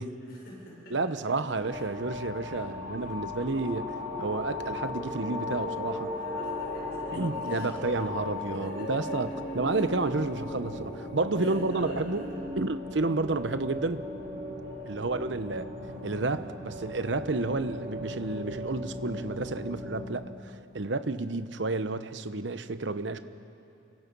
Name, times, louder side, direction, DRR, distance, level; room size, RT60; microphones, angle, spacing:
voice 1, 0.2-1.4 1.7-2.1 2.4-2.8 6.1-8.2 8.5-9.9 11.4-12.4 14.6-15.0, left 1 dB, 55° left, -3 dB, 6.1 m, -50 dB
voice 2, 0.9-6.1 7.1-9.3 9.5-12.2 12.6-14.1 14.9-15.7 16.0-23.2, right 3 dB, 70° right, 11 dB, 1.0 m, -31 dB
sound 1, 1.6-20.1, left 2 dB, 50° right, 3.7 m, -38 dB
sound 2, 3.4-12.4, equal, 75° left, 4.1 m, -39 dB
29.5 x 25.0 x 5.5 m, 2.8 s
head